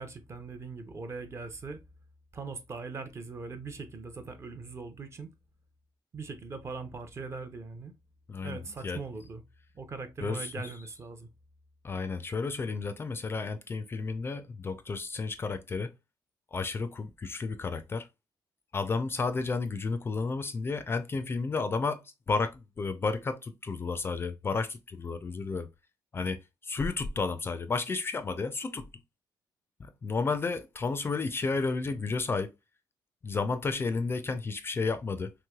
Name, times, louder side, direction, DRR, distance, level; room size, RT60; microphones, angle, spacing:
voice 1, 0.0-1.8 2.3-5.3 6.1-7.9 8.4-9.4 9.7-11.3, right 4 dB, 35° right, 0.5 m, -40 dB
voice 2, 8.3-9.0 10.2-10.7 11.8-15.9 16.5-18.1 18.7-25.7 26.1-28.9 29.8-32.5 33.2-35.3, left 4 dB, 30° left, 0.3 m, -32 dB
3.1 x 3.0 x 2.2 m
cardioid pair, 125°, 8 cm